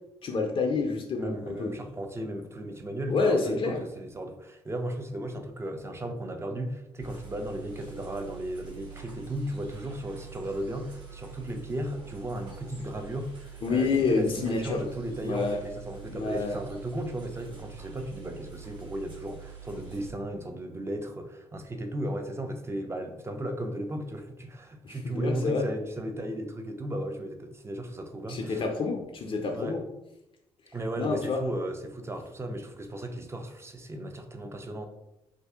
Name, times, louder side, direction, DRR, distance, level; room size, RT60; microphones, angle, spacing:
voice 1, 0.2-1.7 3.1-3.8 13.6-14.8 15.2-15.6 16.1-16.6 24.8-25.6 28.3-29.8 31.0-31.4, left 4 dB, 50° left, 3 dB, 0.5 m, -28 dB
voice 2, 1.2-28.7 29.4-29.9 30.7-34.9, right 1 dB, 20° right, 5 dB, 0.5 m, -35 dB
sound 1, 7.0-20.1, right 8 dB, 40° right, 1.3 m, -46 dB
2.5 x 2.3 x 3.5 m, 0.88 s
hypercardioid pair, 50°, 12 cm